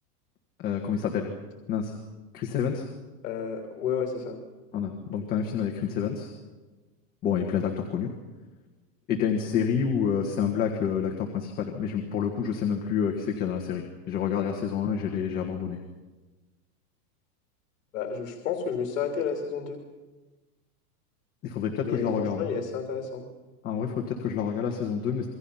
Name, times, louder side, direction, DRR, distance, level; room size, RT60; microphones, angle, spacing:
voice 1, 0.6-1.3 1.7-1.9 2.3-2.9 4.7-6.3 7.2-8.1 9.1-15.8 21.4-22.5 23.6-25.3, left 7 dB, 20° left, 0 dB, 1.7 m, -28 dB
voice 2, 3.2-4.4 17.9-19.8 21.8-23.2, left 6 dB, 55° left, 3 dB, 3.2 m, -31 dB
27.0 x 24.0 x 5.7 m, 1.2 s
supercardioid pair, 170°, 47 cm